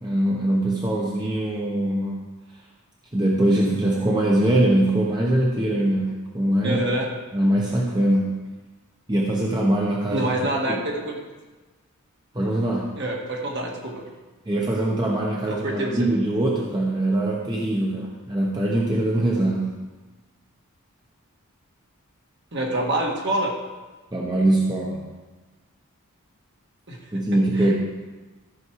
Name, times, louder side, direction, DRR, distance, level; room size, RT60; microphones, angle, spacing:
voice 1, 0.0-2.3 3.1-6.8 7.3-8.4 9.1-10.3 10.7-10.8 12.3-12.9 14.5-19.8 24.1-25.0 27.1-27.7, right 1 dB, 20° right, -3 dB, 1.1 m, -22 dB
voice 2, 6.6-7.1 10.1-11.2 13.0-14.0 15.4-16.1 22.5-23.5 26.9-27.0 27.5-27.7, right 1 dB, 50° right, -1 dB, 1.8 m, -26 dB
14.0 x 6.3 x 4.8 m, 1.2 s
head